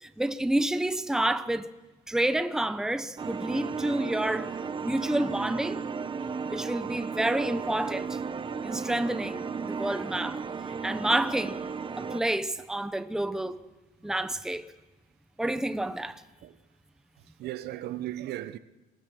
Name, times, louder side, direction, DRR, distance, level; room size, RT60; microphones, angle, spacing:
voice 1, 0.0-1.7 2.1-4.5 4.8-5.8 6.5-8.2 8.6-10.4 10.8-11.6 12.0-13.6 14.0-14.6 15.4-16.2, right 1 dB, 5° right, 0.9 m, -29 dB
sound 1, 3.2-12.2, right 5 dB, 30° right, 1.2 m, -34 dB
voice 2, 17.4-18.6, right 14 dB, 75° right, 1.1 m, -36 dB
25.0 x 19.0 x 6.2 m
cardioid pair, 110°, 17 cm